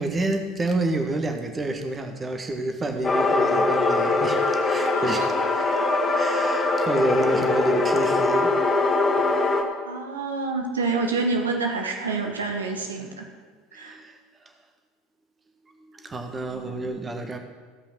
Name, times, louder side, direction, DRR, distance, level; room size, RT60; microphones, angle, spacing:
voice 1, 0.0-5.6 6.1-9.5 13.7-14.5 15.8-17.4, right 2 dB, 25° right, 5 dB, 1.4 m, -29 dB
sound 1, 3.0-9.6, left 3 dB, 25° left, 1.8 m, -22 dB
voice 2, 4.9-5.3 9.8-13.3 13.7-14.0 16.5-16.8, right 3 dB, 85° right, 2 dB, 1.3 m, -28 dB
15.5 x 5.6 x 6.0 m, 1.5 s
figure-of-eight pair, 75°, 0 cm